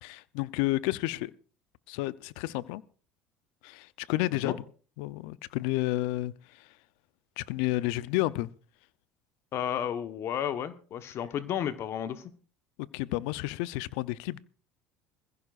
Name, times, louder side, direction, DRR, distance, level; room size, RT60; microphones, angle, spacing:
voice 1, 0.0-1.3 1.9-2.8 3.6-4.5 5.0-6.7 7.4-8.5 12.8-14.4, left 18 dB, 75° left, 0.6 m, -31 dB
voice 2, 9.5-12.3, left 9 dB, 55° left, 1.1 m, -32 dB
21.5 x 15.0 x 2.5 m
supercardioid pair, 85°, 5 cm